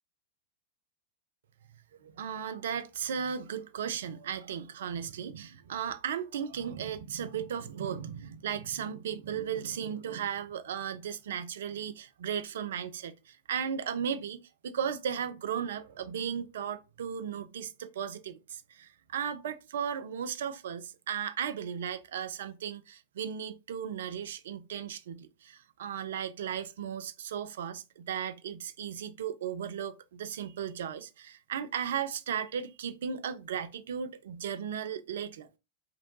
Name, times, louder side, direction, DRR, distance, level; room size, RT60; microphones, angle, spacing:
voice 1, 1.9-35.6, right 8 dB, 60° right, 0.4 m, -36 dB
3.0 x 2.5 x 3.1 m
figure-of-eight pair, 90°, 0 cm